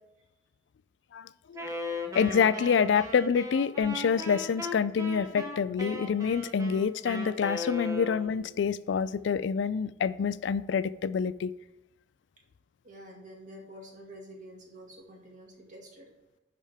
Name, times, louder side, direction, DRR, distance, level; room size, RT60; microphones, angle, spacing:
voice 1, 1.1-1.6 2.1-11.5, left 6 dB, 75° left, 16 dB, 0.3 m, -27 dB
Wind instrument woodwind instrument, 1.5-8.5, left 2 dB, 20° right, 1.0 m, -38 dB
voice 2, 12.8-16.1, equal, 40° right, 0 dB, 2.0 m, -48 dB
11.0 x 5.0 x 3.5 m, 0.95 s
head